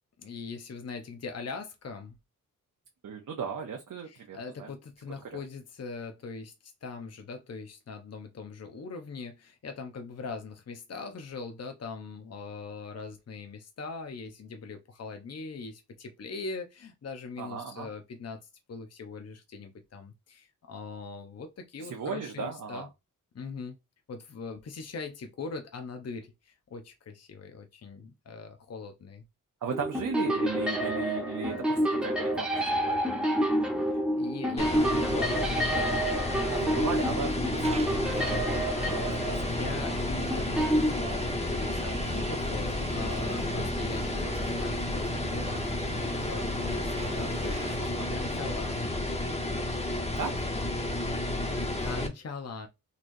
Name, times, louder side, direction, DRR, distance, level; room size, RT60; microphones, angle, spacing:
voice 1, 0.2-2.2 4.0-22.9 23.3-23.8 24.1-29.2 33.8-36.2 36.6-36.9 39.2-49.0 51.8-52.7, left 4 dB, 45° left, 0.8 m, -41 dB
voice 2, 3.0-4.7 5.3-5.4 17.4-17.9 21.8-22.9 29.6-33.2 36.5-37.9 38.1-38.5 39.0-39.6 42.3-42.5 47.8-48.7 50.2-50.5, right 6 dB, 60° right, 0.8 m, -37 dB
Synth Sounds Ambiance Unedited, 29.7-40.9, equal, 5° right, 1.1 m, -29 dB
sound 1, 34.6-52.1, left 1 dB, 20° left, 1.0 m, -31 dB
sound 2, 37.6-47.8, right 4 dB, 20° right, 0.4 m, -41 dB
4.0 x 3.1 x 2.6 m
cardioid pair, 85°, 34 cm